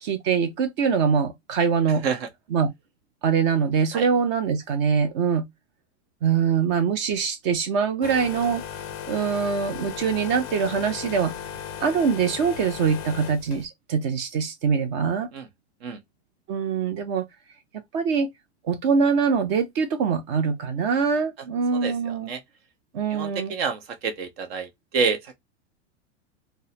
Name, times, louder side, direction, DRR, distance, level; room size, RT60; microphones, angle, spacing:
voice 1, 0.0-2.0 2.5-2.7 3.2-5.5 6.2-8.6 9.1-11.3 11.8-15.3 16.5-17.2 17.9-18.3 18.6-22.3 22.9-23.5, right 6 dB, 35° right, 0.7 m, -23 dB
sound 1, 8.0-13.7, left 8 dB, 35° left, 0.4 m, -36 dB
voice 2, 21.7-22.4 23.1-25.3, right 5 dB, 55° right, 1.0 m, -28 dB
3.5 x 2.2 x 2.7 m
supercardioid pair, 165°, 35 cm